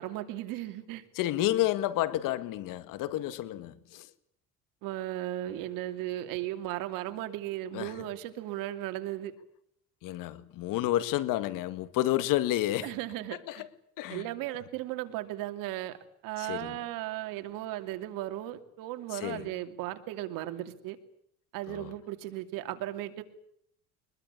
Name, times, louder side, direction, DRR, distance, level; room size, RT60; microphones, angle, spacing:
voice 1, 0.0-1.0 4.8-9.3 12.8-13.7 14.1-21.0 21.5-23.2, right 14 dB, 80° right, 2.9 m, -36 dB
voice 2, 1.2-4.1 7.7-7.9 10.0-12.9 13.5-13.7 14.0-14.3 16.4-16.8 19.1-19.5 21.7-21.9, left 14 dB, 75° left, 2.0 m, -30 dB
23.5 x 21.5 x 9.9 m
cardioid pair, 105°, 33 cm